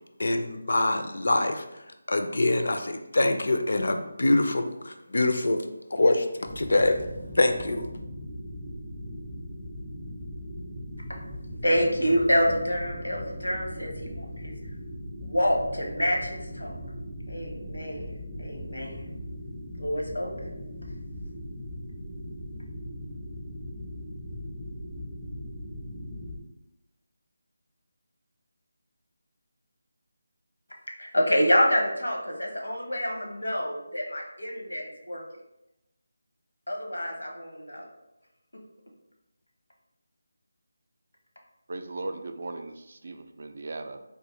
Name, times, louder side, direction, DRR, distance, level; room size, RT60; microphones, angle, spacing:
voice 1, 0.2-5.7 5.9-7.0 7.3-7.9, left 2 dB, 70° left, 6 dB, 0.4 m, -25 dB
sound 1, 6.4-26.4, equal, 15° right, 0.6 m, -39 dB
voice 2, 11.6-14.5 15.2-16.8 17.3-18.1 18.4-19.0 19.8-20.5 31.0-35.2 36.7-37.9, equal, 85° left, 1 dB, 0.8 m, -27 dB
voice 3, 41.7-44.0, right 2 dB, 55° right, 7 dB, 0.3 m, -37 dB
3.5 x 2.7 x 3.0 m, 0.90 s
figure-of-eight pair, 160°, 0 cm